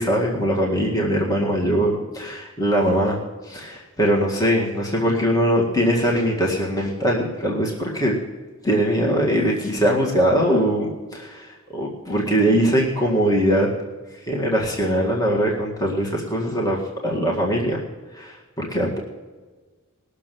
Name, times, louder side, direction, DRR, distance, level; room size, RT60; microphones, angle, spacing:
voice 1, 0.0-8.1 8.6-13.7 14.1-17.8 18.1-19.0, equal, 15° left, -2 dB, 1.8 m, -21 dB
20.0 x 6.7 x 7.6 m, 1.3 s
head